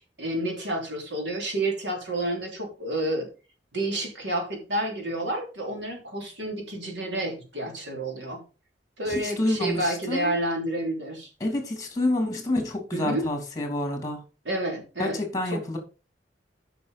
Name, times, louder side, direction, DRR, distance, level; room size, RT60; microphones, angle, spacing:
voice 1, 0.0-3.3 3.7-8.4 9.0-11.3 12.9-13.3 14.4-15.6, right 1 dB, 75° right, 3.4 m, -30 dB
voice 2, 9.1-10.3 11.4-14.2 15.0-15.8, left 1 dB, 20° left, 2.8 m, -28 dB
8.2 x 5.9 x 5.1 m
head